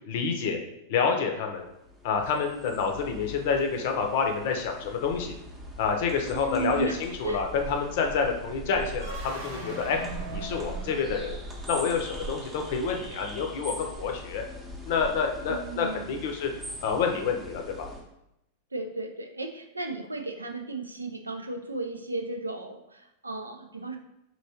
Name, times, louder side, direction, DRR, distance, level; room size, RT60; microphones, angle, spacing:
voice 1, 0.1-0.6 0.9-1.6 2.0-5.3 5.8-10.0 10.3-11.4 11.7-14.4 14.9-16.5 16.8-17.9, left 5 dB, 50° left, 3 dB, 0.6 m, -28 dB
sound 1, 1.6-18.0, right 1 dB, 15° right, 0.7 m, -41 dB
voice 2, 6.3-7.4 15.4-16.2 18.7-24.0, right 3 dB, 80° right, 5 dB, 0.4 m, -35 dB
sound 2, 8.9-11.9, right 2 dB, 50° right, 0.7 m, -41 dB
4.5 x 2.9 x 2.8 m, 0.85 s
figure-of-eight pair, 90°, 0 cm